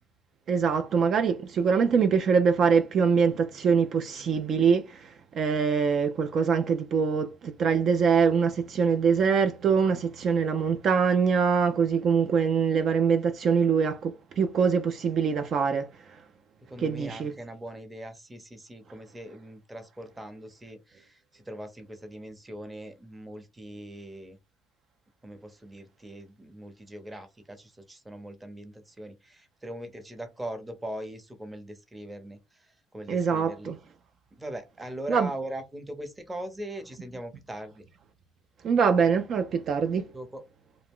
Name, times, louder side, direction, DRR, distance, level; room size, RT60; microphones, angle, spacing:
voice 1, 0.5-15.9 16.8-17.3 33.1-33.8 35.1-35.3 38.6-40.1, right 6 dB, 50° right, 0.3 m, -24 dB
voice 2, 16.7-24.4 25.2-32.7 32.9-33.7 34.3-37.8 40.1-40.4, right 1 dB, 15° right, 0.7 m, -40 dB
2.4 x 2.0 x 3.5 m
supercardioid pair, 80°, 0 cm